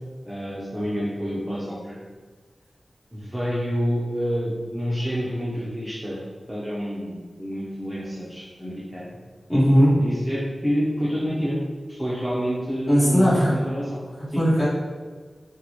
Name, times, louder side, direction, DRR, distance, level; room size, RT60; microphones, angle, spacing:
voice 1, 0.2-2.0 3.1-6.2 6.5-9.2 9.9-11.6 11.9-14.0 14.3-14.4, equal, 5° right, -8 dB, 0.6 m, -28 dB
voice 2, 9.5-9.9 12.9-13.5 14.3-14.7, equal, 30° left, -9 dB, 1.5 m, -17 dB
3.8 x 2.2 x 2.9 m, 1.5 s
wide cardioid pair, 80°, 0 cm